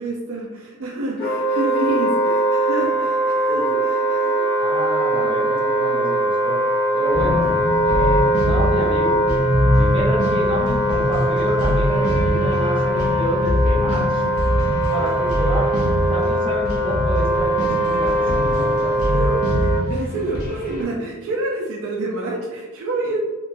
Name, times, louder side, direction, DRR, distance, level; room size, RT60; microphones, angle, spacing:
voice 1, 0.0-4.5 19.1-23.2, right 2 dB, 60° right, -2 dB, 0.4 m, -28 dB
Wind instrument woodwind instrument, 1.2-19.8, right 1 dB, 50° left, 0.6 m, -21 dB
voice 2, 4.6-6.6 6.9-7.5 7.8-9.1 9.7-14.2 14.9-18.9, right 1 dB, 25° right, -5 dB, 0.7 m, -29 dB
sound 1, 7.1-20.8, left 1 dB, 85° left, 0.8 m, -23 dB
2.9 x 2.2 x 2.5 m, 1.2 s
head